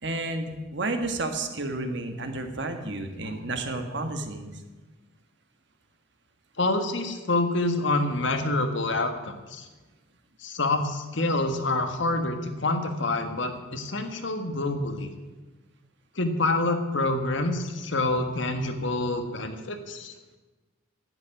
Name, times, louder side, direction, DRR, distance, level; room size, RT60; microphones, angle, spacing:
voice 1, 0.0-4.5, right 2 dB, 60° right, 6 dB, 1.7 m, -31 dB
voice 2, 6.6-9.7 10.4-15.1 16.1-20.1, left 2 dB, 65° left, 7 dB, 1.6 m, -27 dB
11.0 x 9.0 x 9.8 m, 1.2 s
head